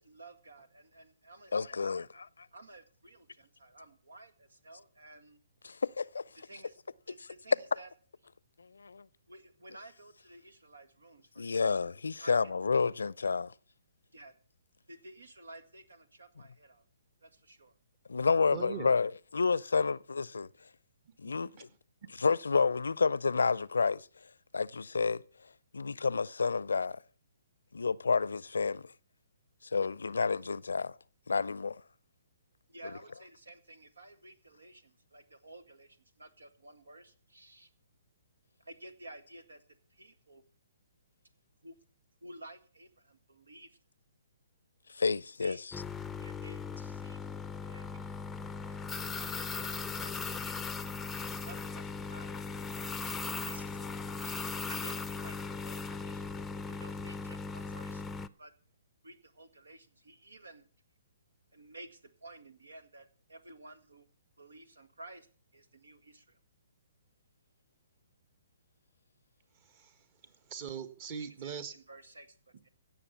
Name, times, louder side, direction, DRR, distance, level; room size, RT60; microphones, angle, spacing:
voice 1, 0.0-2.2 2.5-5.4 6.4-6.8 7.1-7.9 9.3-11.7 12.2-12.5 14.1-14.3 14.9-16.8 17.2-17.7 32.7-37.7 38.6-39.6 39.9-40.4 41.6-41.8 42.2-43.8 45.4-45.6 46.2-47.2 47.6-48.0 49.0-50.6 51.4-52.3 52.6-53.8 54.2-58.0 58.4-58.5 59.0-60.6 61.5-64.1 64.4-65.3 65.5-66.4 71.2-72.7, right 2 dB, 90° right, 1.9 m, -53 dB
voice 2, 1.5-2.1 5.6-6.2 8.6-9.0 11.4-13.5 18.1-20.5 21.2-21.7 22.2-24.1 24.5-25.2 25.7-27.0 27.7-28.9 29.7-30.9 31.3-31.8 44.9-45.6, left 4 dB, 85° left, 0.5 m, -30 dB
voice 3, 18.5-18.9 21.3-21.7 48.0-48.1 48.6-48.8 51.3-51.5 69.6-71.7, right 7 dB, 35° right, 1.6 m, -43 dB
sound 1, 45.7-58.3, left 4 dB, 10° left, 0.5 m, -38 dB
16.5 x 7.0 x 7.1 m
hypercardioid pair, 140°, 0 cm